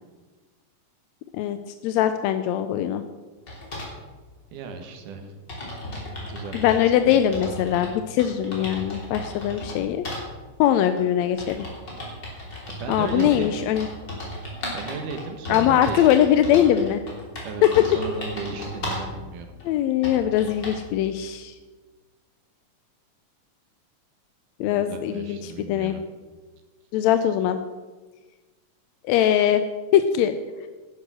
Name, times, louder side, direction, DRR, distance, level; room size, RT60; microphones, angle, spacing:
voice 1, 1.8-3.0 6.5-10.1 10.6-11.7 12.9-13.9 15.5-17.0 19.6-21.5 24.6-26.0 26.9-27.6 29.0-29.6 29.9-30.3, left 10 dB, 80° left, 9 dB, 1.7 m, -21 dB
sound 1, 3.5-3.9 4.8-4.9 5.1-5.2 5.5-7.9 8.2-9.8 10.0-10.2 11.0-19.1 19.6-19.7 20.0-20.9, left 1 dB, 35° left, 3.5 m, -35 dB
voice 2, 4.5-5.4 5.8-7.2 12.7-13.5 14.7-16.7 17.4-17.7 17.9-19.5 24.6-26.0, right 5 dB, 85° right, 6 dB, 2.9 m, -36 dB
11.0 x 9.5 x 6.2 m, 1.3 s
omnidirectional pair, 3.6 m